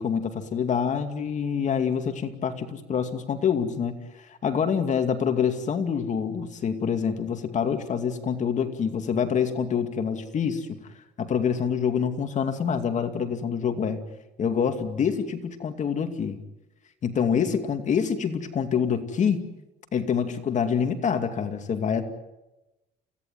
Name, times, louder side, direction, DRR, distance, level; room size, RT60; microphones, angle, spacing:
voice 1, 0.0-10.7 11.2-14.0 14.4-16.4 17.0-19.5 19.9-22.0, left 7 dB, 45° left, 7 dB, 2.5 m, -26 dB
29.0 x 17.0 x 9.3 m, 1.0 s
cardioid pair, 110°, 17 cm